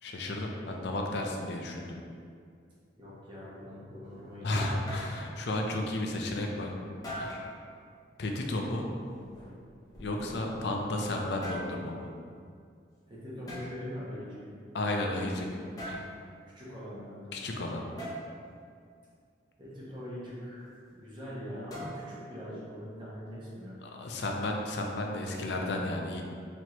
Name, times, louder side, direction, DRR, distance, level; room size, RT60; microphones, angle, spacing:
voice 1, 0.0-1.9 4.4-6.7 7.2-7.4 8.2-8.9 10.0-12.1 14.7-15.5 15.8-16.1 17.3-17.8 23.8-26.2, left 1 dB, 65° left, 1 dB, 0.5 m, -33 dB
voice 2, 3.0-4.9 13.1-14.4 16.5-17.3 19.6-23.8, equal, 25° right, -8 dB, 0.9 m, -42 dB
sound 1, 4.1-4.2 4.6-5.1 7.0-7.5 9.2-10.6 11.2-11.7 13.5-13.7 15.8-16.1 18.0-18.2 21.7-22.2, equal, 20° left, 0.7 m, -40 dB
4.4 x 3.0 x 2.9 m, 2.3 s
head